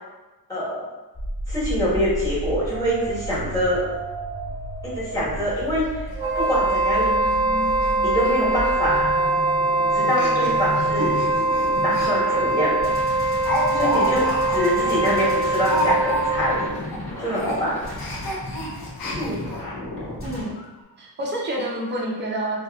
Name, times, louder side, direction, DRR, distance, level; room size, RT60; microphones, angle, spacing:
voice 1, 0.5-0.9 1.5-3.9 4.8-6.1 6.3-7.2 8.0-9.1 9.9-11.1 11.8-12.9 13.7-16.7 17.2-17.9 19.2-19.4, equal, 10° left, -9 dB, 1.3 m, -25 dB
sound 1, 1.1-20.4, equal, 30° left, 1.2 m, -33 dB
Speech, 5.7-5.8 6.2-6.3 6.6-6.8 7.2-7.4 7.6-7.9 8.2-8.3 9.1-9.3 10.0-12.1 12.5-12.6 13.0-16.5 16.8-17.0 17.3-19.6 20.2-20.3 20.6-20.7, equal, 55° left, 0.7 m, -29 dB
Wind instrument woodwind instrument, 6.1-16.7, right 2 dB, 85° right, 0.8 m, -23 dB
voice 2, 20.2-20.5 21.0-22.6, right 1 dB, 25° right, -2 dB, 0.6 m, -28 dB
2.8 x 2.4 x 2.3 m, 1.1 s
cardioid pair, 100°, 43 cm